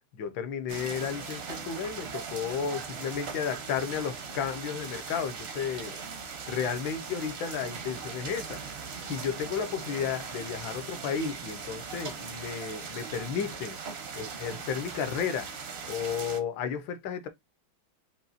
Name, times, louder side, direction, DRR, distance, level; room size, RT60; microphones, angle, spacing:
voice 1, 0.1-6.0 6.5-13.8 14.1-15.5 15.9-17.3, left 7 dB, 75° left, 1.4 m, -33 dB
sound 1, 0.7-16.4, right 5 dB, 60° right, 0.6 m, -40 dB
5.4 x 2.7 x 2.5 m
omnidirectional pair, 2.2 m